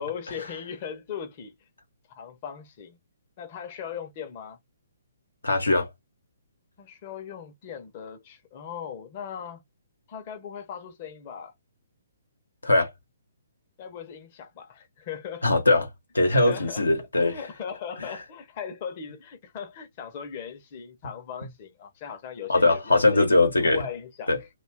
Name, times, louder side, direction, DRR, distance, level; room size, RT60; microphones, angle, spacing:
voice 1, 0.0-1.5 2.1-3.0 3.4-4.6 6.8-9.6 10.1-11.5 13.8-15.5 16.3-16.9 17.2-23.3 23.6-24.5, left 7 dB, 40° left, 0.7 m, -38 dB
voice 2, 5.4-5.9 12.6-12.9 15.4-15.9 16.1-17.4 22.5-23.8 24.3-24.4, left 2 dB, 90° left, 0.9 m, -21 dB
2.4 x 2.3 x 3.4 m
figure-of-eight pair, 135°, 0 cm